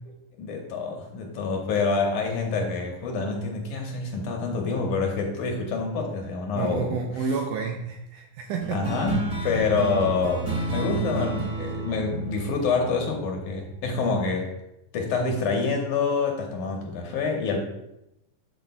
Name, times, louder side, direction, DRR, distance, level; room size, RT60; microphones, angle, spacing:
voice 1, 0.4-7.0 8.7-14.5 14.9-17.6, left 4 dB, 70° left, 1 dB, 2.3 m, -27 dB
voice 2, 6.6-8.9 9.4-9.6, right 5 dB, 80° right, 3 dB, 1.9 m, -30 dB
sound 1, 8.6-13.5, right 2 dB, 35° right, 1.1 m, -30 dB
13.5 x 6.1 x 2.2 m, 0.85 s
omnidirectional pair, 4.0 m